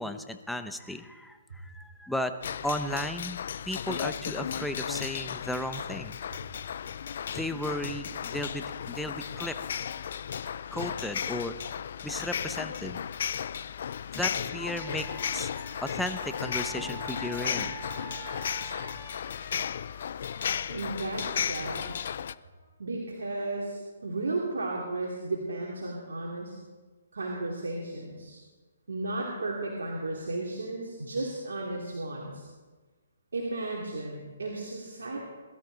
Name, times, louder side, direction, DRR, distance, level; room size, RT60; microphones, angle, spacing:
voice 1, 0.0-2.3 2.6-3.4 3.7-6.2 7.3-9.6 10.7-11.6 12.0-13.0 14.1-17.8 18.6-18.7, left 1 dB, ahead, 7 dB, 0.9 m, -35 dB
sound 1, 2.4-22.3, left 8 dB, 60° left, 0.5 m, -35 dB
Wind instrument woodwind instrument, 14.6-19.3, right 11 dB, 30° right, 0.9 m, -47 dB
Trumpet, 16.5-21.4 21.7-22.7, left 5 dB, 45° left, 4.1 m, -51 dB
voice 2, 20.7-21.9 22.8-26.6 27.1-28.4 28.9-32.5 33.3-35.2, right 2 dB, 80° right, -2 dB, 2.8 m, -34 dB
21.5 x 12.5 x 4.0 m, 1.3 s
hypercardioid pair, 140°, 0 cm